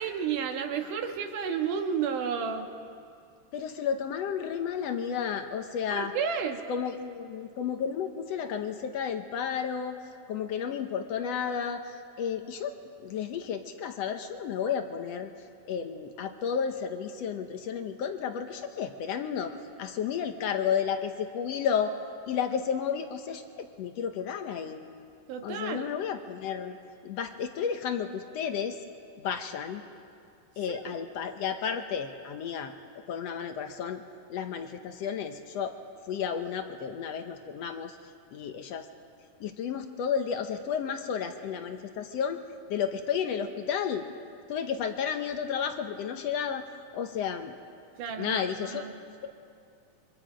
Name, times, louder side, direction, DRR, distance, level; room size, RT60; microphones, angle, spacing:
voice 1, 0.0-2.7 5.9-6.6 25.3-25.9 30.7-30.8 48.0-48.9, right 7 dB, 70° right, 4 dB, 2.8 m, -32 dB
voice 2, 3.5-6.1 6.7-10.0 10.3-12.7 13.0-15.3 15.6-19.5 19.8-21.9 22.3-24.8 25.4-26.8 27.0-28.8 29.2-29.8 30.6-32.7 33.1-34.0 34.3-35.7 36.1-38.0 38.3-38.9 39.4-42.4 42.7-44.1 44.5-46.7 46.9-47.5 48.2-48.8, left 7 dB, 70° left, 6 dB, 1.6 m, -32 dB
27.5 x 24.5 x 5.1 m, 2.4 s
omnidirectional pair, 3.9 m